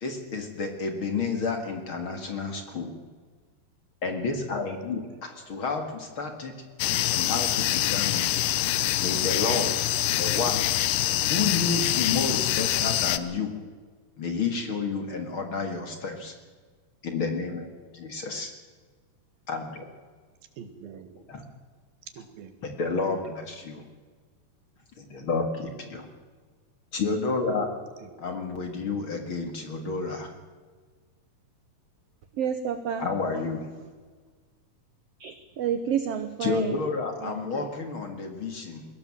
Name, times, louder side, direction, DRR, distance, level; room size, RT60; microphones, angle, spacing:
voice 1, 0.0-3.0 4.0-6.5 7.1-8.4 9.0-9.7 10.2-10.6 11.3-13.5 14.2-16.3 17.0-17.7 17.9-18.5 19.5-19.8 21.3-21.4 22.6-23.9 25.0-26.1 26.9-27.7 28.2-30.3 33.0-33.7 36.4-38.9, left 4 dB, 40° left, 6 dB, 2.3 m, -30 dB
voice 2, 5.1-5.6 20.6-21.2 22.1-22.6 28.0-28.5, right 7 dB, 85° right, 10 dB, 3.5 m, -47 dB
sound 1, 6.8-13.2, left 14 dB, 75° left, 2.2 m, -25 dB
voice 3, 32.4-33.1 35.2-36.8 37.2-37.7, right 8 dB, 70° right, 10 dB, 1.5 m, -30 dB
21.5 x 17.0 x 7.5 m, 1.5 s
omnidirectional pair, 4.1 m